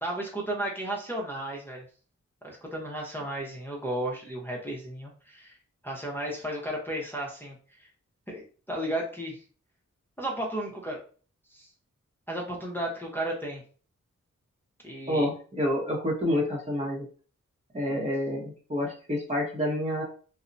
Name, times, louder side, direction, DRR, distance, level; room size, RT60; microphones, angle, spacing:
voice 1, 0.0-1.8 2.4-5.6 5.8-7.6 8.3-9.4 10.2-11.0 11.5-11.7 12.3-13.6 14.8-15.3, right 1 dB, 5° left, -3 dB, 0.8 m, -34 dB
voice 2, 15.1-17.1 17.7-20.0, left 1 dB, 20° right, -3 dB, 1.0 m, -28 dB
2.7 x 2.1 x 2.5 m, 0.40 s
cardioid pair, 40°, 31 cm